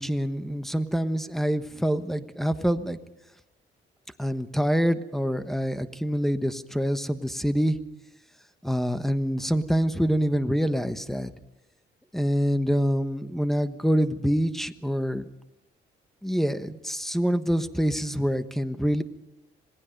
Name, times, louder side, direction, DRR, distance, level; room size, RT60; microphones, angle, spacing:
voice 1, 0.0-3.0 4.2-7.8 8.6-11.3 12.1-15.3 16.2-19.0, equal, ahead, 10 dB, 1.2 m, -26 dB
27.0 x 18.5 x 5.3 m, 0.92 s
cardioid pair, 90°, 20 cm